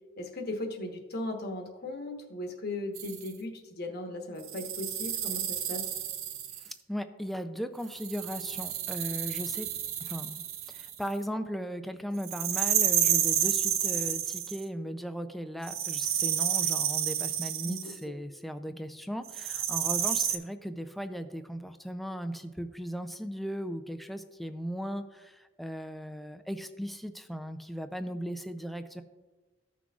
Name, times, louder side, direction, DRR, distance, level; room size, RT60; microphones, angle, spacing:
voice 1, 0.2-5.9 17.6-17.8 18.0-18.1, left 1 dB, 50° left, 3 dB, 1.2 m, -37 dB
sound 1, 2.9-3.3 4.4-6.7 7.9-11.1 12.2-14.6 15.6-18.0 19.3-20.4, right 10 dB, 85° right, 0.7 m, -30 dB
voice 2, 6.6-9.7 10.0-29.0, equal, ahead, 8 dB, 0.4 m, -37 dB
15.0 x 6.0 x 2.4 m, 1.3 s
head